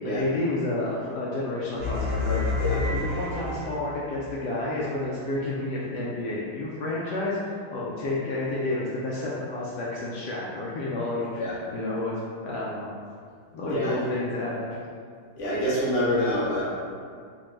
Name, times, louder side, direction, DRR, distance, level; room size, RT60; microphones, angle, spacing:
voice 1, 0.0-2.4 2.8-12.9 13.5-14.7, left 2 dB, 85° left, -6 dB, 0.9 m, -30 dB
sound 1, 1.8-4.2, left 3 dB, 75° right, 0.5 m, -28 dB
voice 2, 15.4-16.7, left 1 dB, 50° left, -8 dB, 1.0 m, -26 dB
4.9 x 2.2 x 3.0 m, 2.1 s
omnidirectional pair, 2.3 m